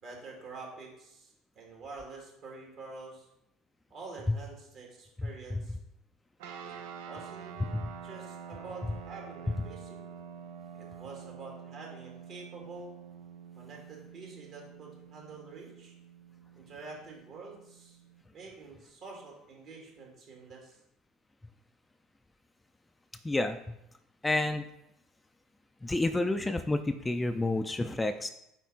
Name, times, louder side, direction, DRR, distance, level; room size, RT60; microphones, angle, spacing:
voice 1, 0.0-3.3 3.9-5.8 6.6-6.7 7.1-7.6 8.0-10.0 10.7-12.9 13.6-15.9 16.6-18.0 18.3-20.8, right 3 dB, 50° right, -1 dB, 2.4 m, -47 dB
sound 1, 6.4-18.2, right 7 dB, 65° right, 0.7 m, -47 dB
voice 2, 23.2-23.6 24.2-24.6 25.8-28.3, left 2 dB, 15° left, 8 dB, 0.5 m, -29 dB
9.3 x 3.6 x 4.1 m, 0.82 s
figure-of-eight pair, 65°, 0 cm